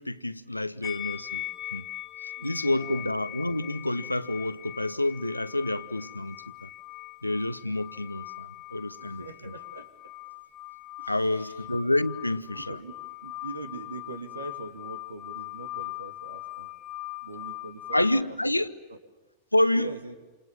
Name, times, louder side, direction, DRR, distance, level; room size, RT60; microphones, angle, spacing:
voice 1, 0.0-1.4 1.7-1.9 2.2-6.7 7.2-9.5 11.1-12.8 17.9-18.7 19.5-19.9, left 1 dB, 85° left, 1.0 m, -28 dB
sound 1, 0.8-18.2, left 16 dB, 25° left, 2.0 m, -41 dB
voice 2, 2.4-3.3 9.0-10.1 11.0-11.7 12.5-12.9 13.2-16.7 17.2-18.6 18.9-19.0 19.7-20.1, right 3 dB, 75° right, 2.8 m, -43 dB
28.5 x 28.0 x 7.4 m
figure-of-eight pair, 90°, 0 cm